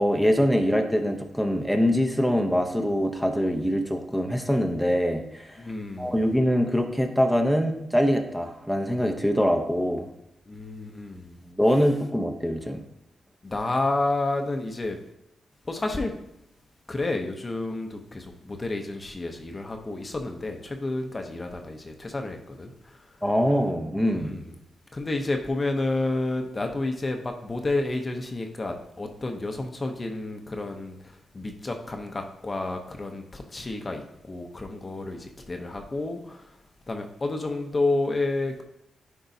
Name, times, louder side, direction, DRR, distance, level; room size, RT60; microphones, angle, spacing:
voice 1, 0.0-5.6 6.0-10.1 11.6-12.8 23.2-24.4, equal, ahead, 3 dB, 0.8 m, -24 dB
voice 2, 5.6-6.3 10.5-11.4 13.4-15.0 15.6-16.1 16.9-23.2 24.1-24.5 24.9-36.6 36.9-38.6, left 2 dB, 30° left, 4 dB, 0.7 m, -30 dB
10.0 x 4.6 x 2.7 m, 0.82 s
cardioid pair, 90°, 0 cm